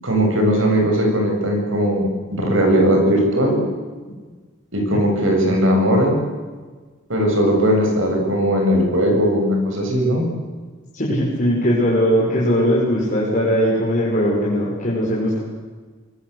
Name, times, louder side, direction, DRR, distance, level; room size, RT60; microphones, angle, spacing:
voice 1, 0.0-3.6 4.7-6.2 7.1-10.3, equal, 75° right, 2 dB, 7.6 m, -18 dB
voice 2, 10.9-15.4, equal, 40° left, -6 dB, 6.2 m, -19 dB
25.5 x 21.0 x 8.4 m, 1.4 s
head